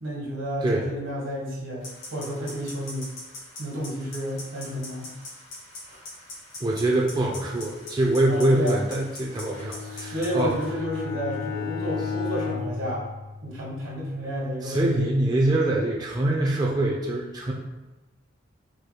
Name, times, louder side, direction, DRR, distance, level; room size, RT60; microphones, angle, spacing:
voice 1, 0.0-3.1 3.6-5.1 5.9-6.0 8.3-8.8 9.8-13.0 13.4-15.1, equal, 80° right, -4 dB, 1.3 m, -31 dB
sound 1, 1.8-10.7, left 1 dB, 80° left, 1.5 m, -43 dB
voice 2, 6.6-10.5 14.6-17.5, right 1 dB, 20° right, -2 dB, 0.4 m, -24 dB
Bowed string instrument, 9.2-13.8, left 6 dB, 50° left, 0.6 m, -34 dB
4.5 x 2.2 x 3.2 m, 1.1 s
head